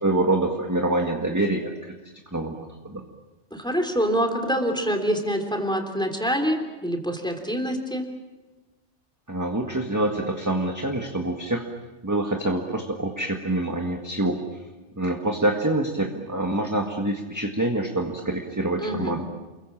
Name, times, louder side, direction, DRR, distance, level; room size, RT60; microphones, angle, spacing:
voice 1, 0.0-1.9 2.3-2.5 2.8-3.0 9.3-11.6 12.0-14.4 15.0-19.3, right 2 dB, 15° right, 2 dB, 1.8 m, -26 dB
voice 2, 3.5-8.1 18.8-19.2, equal, 5° left, 4 dB, 3.4 m, -26 dB
29.5 x 22.5 x 7.5 m, 1.2 s
omnidirectional pair, 1.2 m